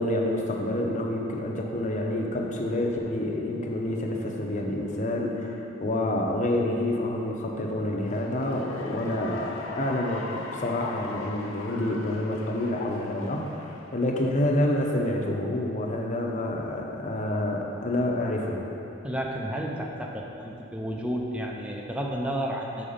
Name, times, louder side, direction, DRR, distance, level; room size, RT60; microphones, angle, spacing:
voice 1, 0.0-18.6, left 1 dB, 40° left, 0 dB, 0.6 m, -28 dB
Cheering / Applause, 7.9-14.6, left 3 dB, 80° left, 0.6 m, -42 dB
voice 2, 19.0-22.9, equal, 5° right, -1 dB, 0.5 m, -31 dB
5.6 x 4.8 x 5.0 m, 2.8 s
head